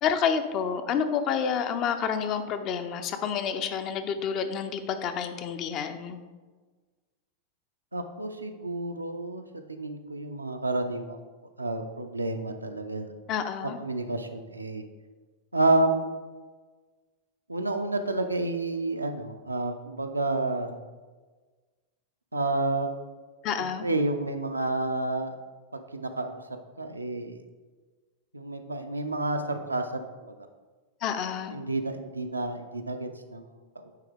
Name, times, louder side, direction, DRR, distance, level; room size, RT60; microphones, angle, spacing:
voice 1, 0.0-6.2 13.3-13.8 23.4-23.9 31.0-31.6, left 7 dB, 35° left, 9 dB, 0.5 m, -29 dB
voice 2, 7.9-9.4 9.7-11.2 11.6-13.1 13.8-14.8 15.5-16.1 17.5-20.7 22.3-22.9 23.8-25.3 25.7-26.4 26.8-27.4 28.3-30.3 31.5-33.5 33.8-33.9, right 2 dB, 80° right, 6 dB, 0.5 m, -29 dB
9.1 x 3.4 x 3.5 m, 1.4 s
figure-of-eight pair, 90°, 0 cm